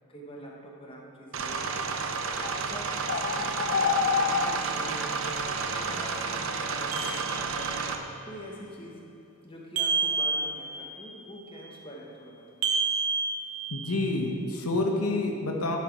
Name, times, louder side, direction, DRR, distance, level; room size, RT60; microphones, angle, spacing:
voice 1, 0.1-2.1 2.7-9.0 9.4-12.7, equal, 25° left, -2 dB, 1.1 m, -45 dB
sound 1, 1.3-8.0, right 4 dB, 60° right, 0.6 m, -31 dB
sound 2, 2.4-2.5 3.1-4.6, left 6 dB, 40° left, 0.3 m, -27 dB
sound 3, 6.9-7.9 9.8-11.0 12.6-14.1, right 4 dB, 75° right, 1.0 m, -29 dB
voice 2, 13.7-15.8, left 2 dB, 75° left, 1 dB, 1.0 m, -28 dB
11.0 x 6.0 x 4.6 m, 2.9 s
head